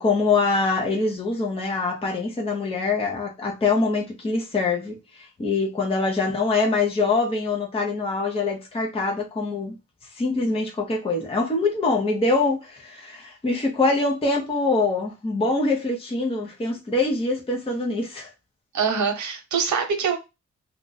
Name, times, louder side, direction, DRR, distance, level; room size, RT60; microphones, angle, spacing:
voice 1, 0.0-9.7 10.1-18.3, left 3 dB, 20° left, 0.7 m, -24 dB
voice 2, 18.7-20.2, right 6 dB, 75° right, 0.9 m, -24 dB
2.5 x 2.2 x 3.8 m
wide cardioid pair, 125°, 30 cm